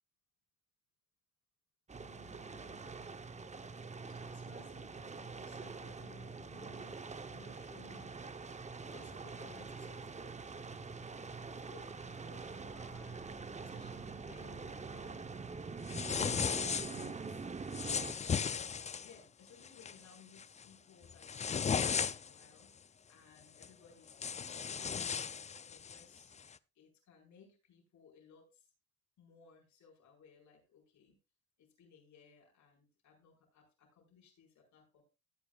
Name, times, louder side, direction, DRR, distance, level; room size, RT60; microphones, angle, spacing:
sound 1, 1.9-18.1, right 4 dB, 25° right, 0.9 m, -45 dB
voice 1, 2.0-2.9 4.0-8.3 8.9-10.4 11.5-15.3 16.5-17.5 18.5-28.7 29.2-31.2 31.6-35.0, left 6 dB, 70° left, 2 dB, 4.7 m, -61 dB
sound 2, 15.9-17.1 17.7-19.1 19.6-19.9 20.4-20.6 21.0-22.4 23.6-23.7 24.1-26.0, left 6 dB, 25° left, 0.4 m, -36 dB
15.0 x 8.9 x 2.4 m, 0.28 s
cardioid pair, 90°, 30 cm